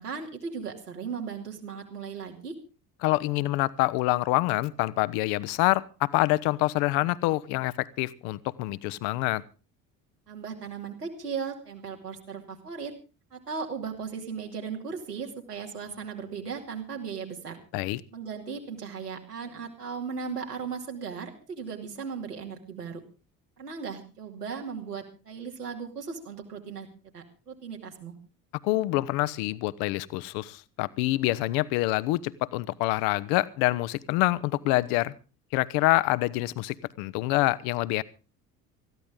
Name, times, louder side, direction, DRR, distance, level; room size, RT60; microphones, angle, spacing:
voice 1, 0.0-2.6 10.3-12.9 13.3-17.6 18.1-23.0 23.6-26.9 27.1-28.1, right 6 dB, 80° right, 1 dB, 2.7 m, -37 dB
voice 2, 3.0-9.4 17.7-18.0 28.6-35.1 35.5-38.0, left 19 dB, 55° left, 19 dB, 0.9 m, -26 dB
20.0 x 14.5 x 3.7 m, 0.33 s
figure-of-eight pair, 60°, 46 cm